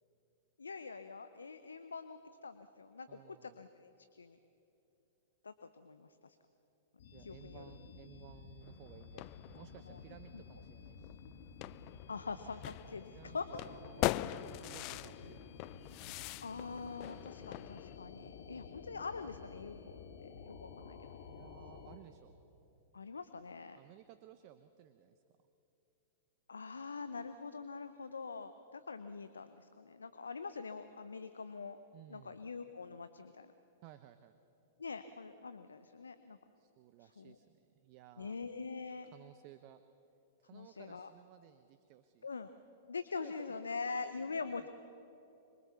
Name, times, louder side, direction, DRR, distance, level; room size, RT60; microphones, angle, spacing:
voice 1, 0.6-4.4 5.4-6.4 7.2-7.6 9.9-10.0 12.1-13.6 16.4-21.1 22.9-23.8 26.5-31.8 32.1-33.5 34.8-36.4 37.0-37.4 38.2-39.1 40.5-41.1 42.2-42.5 42.9-44.7, left 4 dB, 80° left, 11 dB, 0.8 m, -44 dB
voice 2, 3.1-3.6 7.1-9.3 9.5-11.2 13.1-14.2 14.6-15.8 21.3-22.3 23.8-25.2 31.9-32.4 33.8-34.4 36.6-38.4 39.1-39.8 40.4-42.3 43.2-43.6 44.2-44.7, right 13 dB, 45° right, 11 dB, 0.9 m, -58 dB
sound 1, 7.0-22.0, left 5 dB, 60° left, 2.3 m, -52 dB
sound 2, 8.6-18.0, left 17 dB, 40° left, 0.6 m, -42 dB
26.0 x 23.0 x 7.0 m, 3.0 s
figure-of-eight pair, 105°, 0 cm